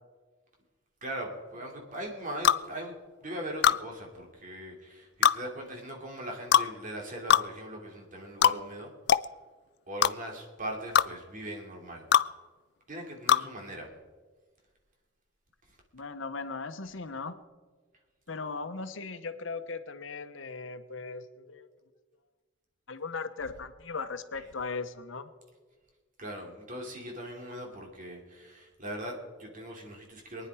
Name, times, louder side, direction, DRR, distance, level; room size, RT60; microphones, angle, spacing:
voice 1, 1.0-8.9 9.9-12.1 12.9-13.9 24.3-24.4 26.2-30.5, right 1 dB, 45° right, 0 dB, 2.9 m, -40 dB
sound 1, 2.4-2.6 3.6-3.8 5.2-5.4 6.5-6.7 7.3-7.5 8.4-8.6 9.1-9.3 10.0-10.1 10.9-11.1 12.1-12.3 13.3-13.4, left 9 dB, 60° left, 0.4 m, -21 dB
voice 2, 15.9-17.4 18.3-21.7 22.9-25.3, left 4 dB, 85° left, 10 dB, 1.0 m, -38 dB
23.0 x 10.0 x 4.9 m, 1.4 s
head